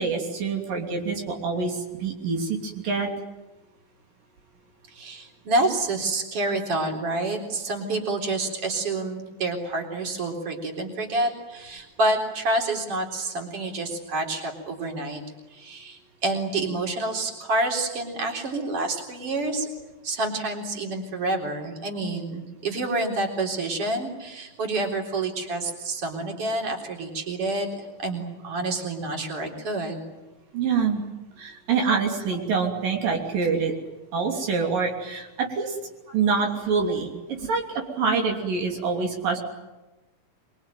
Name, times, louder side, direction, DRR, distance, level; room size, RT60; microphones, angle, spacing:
voice 1, 0.0-3.1 30.5-31.0 31.4-33.7 34.1-35.8 36.1-39.4, right 5 dB, 85° right, 1 dB, 4.8 m, -26 dB
voice 2, 4.9-15.2 15.5-19.6 20.0-30.0, right 2 dB, 45° right, 2 dB, 4.7 m, -28 dB
24.5 x 23.5 x 9.2 m, 1.1 s
omnidirectional pair, 3.8 m